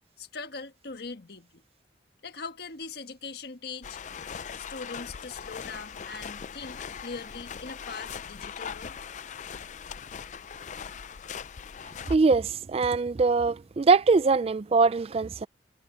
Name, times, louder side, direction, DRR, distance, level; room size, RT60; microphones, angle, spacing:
voice 1, 0.2-1.6 2.2-4.0 4.6-8.9, left 4 dB, 65° left, 1.5 m, -41 dB
sound 1, 3.8-12.2, left 7 dB, 45° left, 0.5 m, -40 dB
voice 2, 12.1-15.5, right 4 dB, 35° right, 0.4 m, -22 dB
head